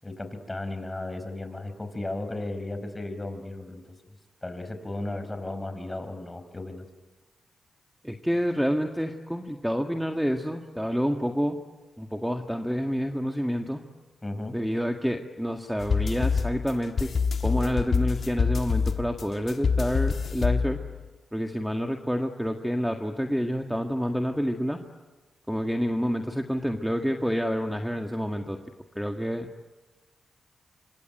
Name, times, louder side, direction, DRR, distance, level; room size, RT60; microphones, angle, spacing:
voice 1, 0.0-3.8 4.4-6.8 14.2-14.6, left 2 dB, 20° left, 9 dB, 5.1 m, -35 dB
voice 2, 8.0-11.6 12.0-13.8 14.5-17.1 17.4-20.8 21.3-24.8 25.5-28.6 29.0-29.5, equal, ahead, 4 dB, 1.9 m, -28 dB
sound 1, 15.8-21.1, left 5 dB, 65° left, 1.5 m, -26 dB
25.5 x 25.0 x 9.1 m, 1.2 s
cardioid pair, 55°, 0 cm